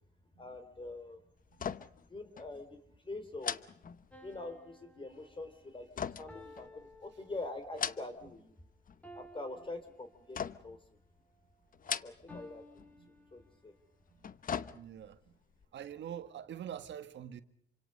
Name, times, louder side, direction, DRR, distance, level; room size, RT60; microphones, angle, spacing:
voice 1, 0.4-1.2 2.1-3.6 4.2-6.7 7.0-8.5 9.1-10.8 12.0-13.7, left 2 dB, 25° left, 3.3 m, -45 dB
sound 1, 1.5-2.1 2.4-2.5 3.4-4.5 6.0-7.1 7.6-8.4 8.7-9.3 10.3-10.9 11.7-12.5 12.8-12.9 14.0-15.2 15.6-15.7, left 7 dB, 45° left, 0.9 m, -40 dB
sound 2, 4.1-7.9 9.0-10.6 12.3-13.8, equal, 5° left, 3.8 m, -57 dB
voice 2, 14.7-15.4 15.7-17.4, right 9 dB, 65° right, 1.6 m, -45 dB
27.5 x 25.5 x 5.4 m
cardioid pair, 90°, 20 cm